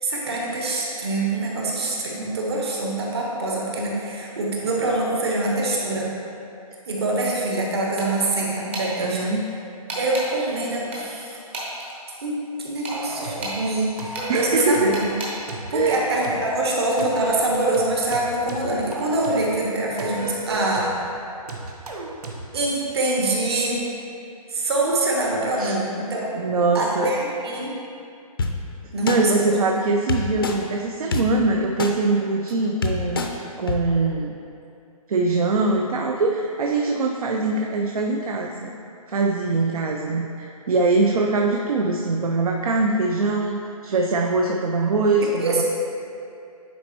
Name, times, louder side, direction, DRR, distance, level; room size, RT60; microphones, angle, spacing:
voice 1, 0.0-6.1 6.9-9.2 9.9-11.4 12.2-15.1 15.7-20.9 22.5-23.8 24.5-26.3 26.7-27.7 28.9-29.4 45.2-45.6, right 2 dB, 45° right, -3 dB, 1.1 m, -24 dB
es-mouseclicks, 8.0-8.3 8.7-8.9 9.9-10.3 10.9-11.9 12.8-13.6 14.1-14.3 14.9-15.3, right 2 dB, 20° right, 0.7 m, -32 dB
voice 2, 9.0-9.5 14.3-15.0 15.7-16.1 25.6-25.7 26.3-27.1 29.0-34.3 35.1-38.7 39.1-45.6, right 3 dB, 75° right, 1 dB, 0.5 m, -22 dB
sound 1, 12.9-13.6 14.0-15.0 15.5-16.6 17.0-19.6 20.0-21.0 21.5-22.5, right 2 dB, 90° right, 1.0 m, -33 dB
sound 2, 28.4-28.5 29.1-29.2 30.1-30.5 31.1-31.2 31.8-31.9 32.5-32.6 32.8-33.3 33.7-33.8, left 4 dB, 35° left, 0.5 m, -24 dB
9.2 x 4.2 x 3.0 m, 2.6 s
hypercardioid pair, 175°, 19 cm